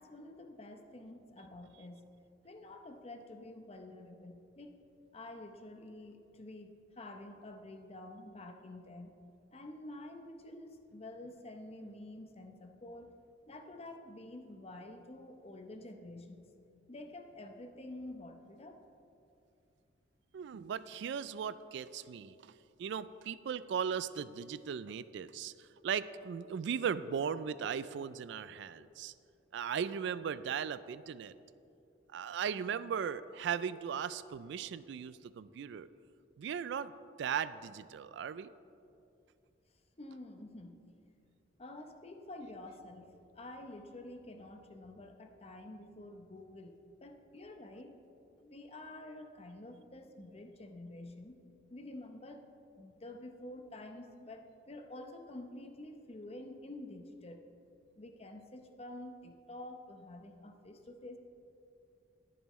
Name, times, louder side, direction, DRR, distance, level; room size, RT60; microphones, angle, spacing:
voice 1, 0.0-2.1 2.4-4.8 5.1-9.1 9.5-13.1 13.5-16.4 16.9-18.8 40.0-40.8 41.6-48.0 48.4-51.4 51.7-52.5 52.8-57.5 58.0-61.2, left 1 dB, 35° left, 5 dB, 0.8 m, -49 dB
voice 2, 20.3-22.5 22.8-29.1 29.5-31.3 32.1-35.9 36.4-36.9 37.2-38.5, right 7 dB, 70° right, 15 dB, 0.3 m, -37 dB
20.5 x 7.0 x 3.1 m, 2.6 s
head